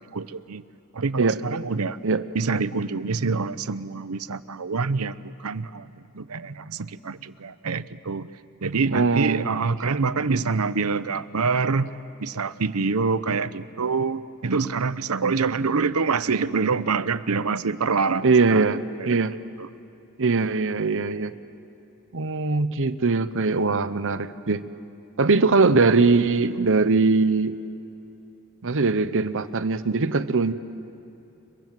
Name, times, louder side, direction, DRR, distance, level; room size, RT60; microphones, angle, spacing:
voice 1, 0.1-0.6 0.9-2.0 2.3-5.9 6.2-8.3 8.6-11.9 12.2-19.2 19.6-19.7, right 4 dB, 80° right, 15 dB, 0.8 m, -26 dB
voice 2, 8.9-9.4 18.2-18.8 19.1-19.4 20.2-21.3 22.1-24.6 25.2-27.6 28.6-30.5, right 4 dB, 60° right, 13 dB, 0.9 m, -21 dB
30.0 x 23.0 x 7.7 m, 2.9 s
head